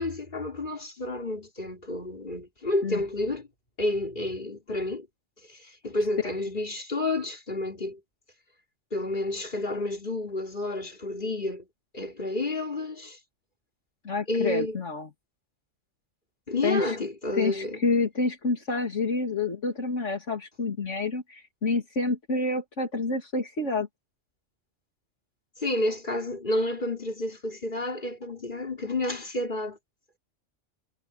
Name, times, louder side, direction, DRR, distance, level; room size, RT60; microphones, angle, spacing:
voice 1, 0.0-3.5 3.8-5.1 5.5-8.0 8.9-11.7 11.9-13.2 14.3-14.8 16.5-17.8 25.6-29.8, left 2 dB, 40° left, 4.1 m, -30 dB
voice 2, 14.0-15.1 16.6-17.0 17.4-23.9, left 3 dB, 75° left, 2.8 m, -28 dB
omnidirectional pair, 1.2 m